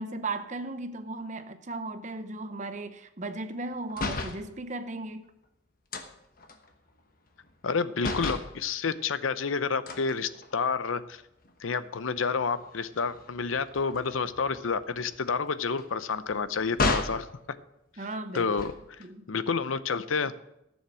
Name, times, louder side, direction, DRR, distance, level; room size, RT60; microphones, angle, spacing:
voice 1, 0.0-5.3 18.0-18.5 19.0-19.3, right 2 dB, 35° right, 0.8 m, -36 dB
sound 1, 3.9-4.4 5.9-7.7 8.0-8.5 9.9-10.9 11.4-11.6 11.9-17.3 18.3-19.0, left 3 dB, 45° left, 1.1 m, -35 dB
voice 2, 7.6-11.2 11.6-17.6 18.3-18.7 19.3-20.3, left 5 dB, 90° left, 0.7 m, -29 dB
14.0 x 7.2 x 6.2 m
head